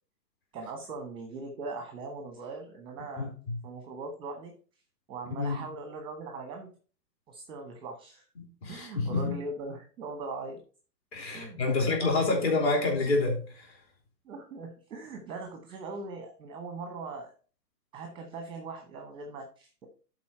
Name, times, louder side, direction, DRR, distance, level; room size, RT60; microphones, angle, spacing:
voice 1, 0.5-3.3 3.6-4.5 5.1-6.7 7.3-8.3 8.7-10.6 11.3-12.7 14.2-17.3 17.9-19.9, right 3 dB, 10° right, 0.9 m, -40 dB
voice 2, 3.2-3.6 5.3-5.6 8.4-9.4 11.1-13.8, left 3 dB, 40° left, 3.3 m, -28 dB
11.5 x 4.1 x 4.3 m
figure-of-eight pair, 125°, 50 cm